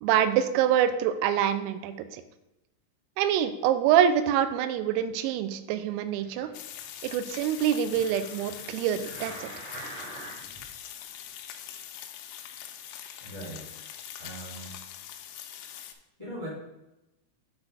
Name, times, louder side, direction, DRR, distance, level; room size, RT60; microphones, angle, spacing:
voice 1, 0.0-2.2 3.2-6.5 7.0-9.5, right 9 dB, 90° right, 12 dB, 3.3 m, -25 dB
sound 1, 6.1-10.7 11.3-11.4, right 2 dB, 60° right, 1.3 m, -45 dB
Big Frying Loop, 6.5-15.9, left 10 dB, 80° left, 3.0 m, -43 dB
voice 2, 13.2-13.8 14.2-14.7 16.2-16.5, right 1 dB, 15° left, -8 dB, 1.2 m, -40 dB
8.1 x 4.1 x 5.4 m, 0.94 s
omnidirectional pair, 6.0 m